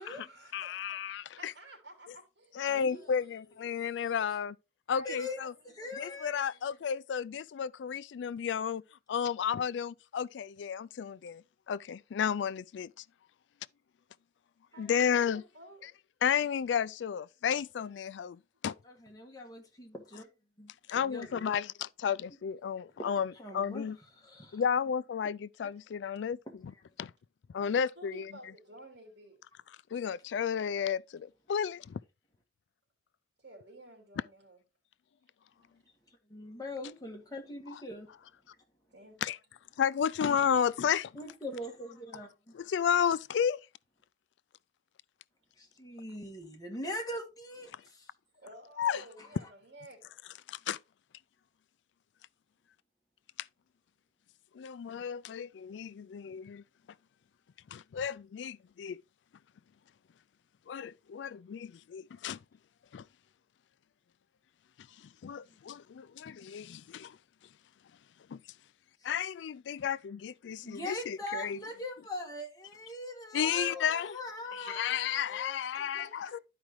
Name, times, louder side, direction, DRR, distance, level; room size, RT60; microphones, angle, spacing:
voice 1, 0.0-2.6 2.9-3.3 4.9-6.2 6.5-6.8 14.7-15.9 28.0-29.4 33.4-34.6 38.9-39.2 47.9-48.0 48.3-50.1 73.3-74.5 75.6-76.4, right 1 dB, 80° right, 2.9 m, -53 dB
voice 2, 0.5-1.5 2.6-4.6 4.9-5.5 6.0-8.8 9.1-12.9 14.8-15.4 16.2-18.7 20.9-24.0 24.5-26.7 27.0-27.1 27.5-28.3 29.9-32.0 37.7-37.8 39.2-39.4 39.8-41.1 42.5-43.6 48.8-49.0 50.5-50.8 54.5-56.6 57.7-59.0 60.7-62.4 62.9-63.0 65.0-67.2 68.3-68.4 69.0-71.6 73.3-74.1 74.5-76.4, left 8 dB, 90° left, 0.3 m, -32 dB
voice 3, 2.7-4.2 5.0-5.4 5.8-6.4 18.8-20.3 20.6-21.5 23.3-23.9 24.2-24.6 36.3-38.1 41.1-42.7 45.6-48.1 49.2-49.3 70.6-75.6, left 1 dB, 20° left, 1.6 m, -42 dB
12.0 x 5.0 x 3.0 m
head